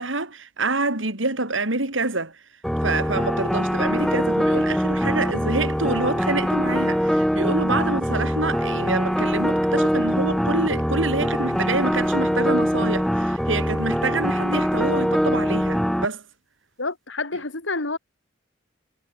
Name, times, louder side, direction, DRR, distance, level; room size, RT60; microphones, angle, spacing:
voice 1, 0.0-2.4 2.8-16.2, right 3 dB, 90° right, 4.8 m, -27 dB
sound 1, 2.6-16.1, equal, ahead, 0.9 m, -23 dB
voice 2, 16.8-18.0, left 3 dB, 75° left, 2.9 m, -28 dB
head